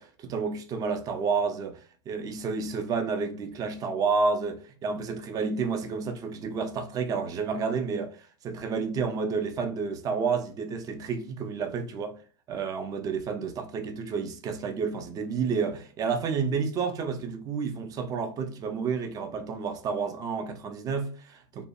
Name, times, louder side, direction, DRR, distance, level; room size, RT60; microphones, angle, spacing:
voice 1, 0.0-1.8 2.1-12.2 12.5-21.6, right 5 dB, 25° right, 0.4 m, -30 dB
2.6 x 2.1 x 2.6 m
figure-of-eight pair, 90°, 14 cm